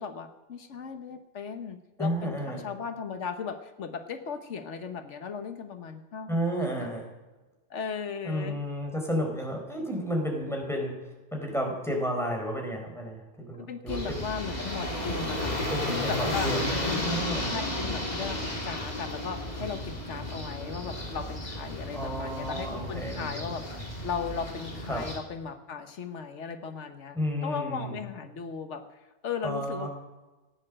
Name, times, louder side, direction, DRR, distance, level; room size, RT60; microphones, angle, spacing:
voice 1, 0.0-6.9 7.7-8.6 13.6-15.6 15.9-16.5 16.8-28.8 29.2-29.9, left 6 dB, 85° left, 8 dB, 1.4 m, -37 dB
voice 2, 2.0-2.6 6.3-7.0 8.2-14.2 15.6-17.6 19.6-19.7 21.9-23.4 24.9-25.1 27.1-28.0 29.4-29.9, equal, ahead, 0 dB, 4.7 m, -32 dB
sound 1, 13.9-25.2, left 1 dB, 35° left, 3.2 m, -33 dB
16.0 x 10.0 x 7.6 m, 1.1 s
omnidirectional pair, 1.2 m